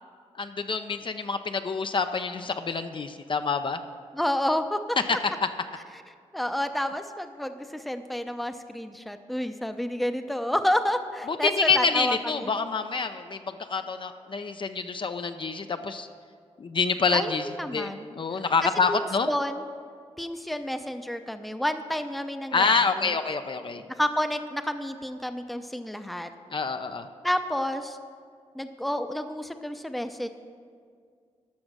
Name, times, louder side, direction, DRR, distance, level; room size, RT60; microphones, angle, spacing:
voice 1, 0.4-3.8 5.1-5.2 11.3-16.1 16.6-19.3 22.5-23.8 26.5-27.1, left 4 dB, 45° left, 8 dB, 0.5 m, -27 dB
voice 2, 4.1-5.0 6.3-12.5 17.1-17.3 17.6-18.0 18.9-19.7 20.2-23.1 24.0-26.3 27.2-28.0 28.5-30.3, left 1 dB, ahead, 8 dB, 0.6 m, -30 dB
11.5 x 6.2 x 6.1 m, 2.1 s
cardioid pair, 65°, 12 cm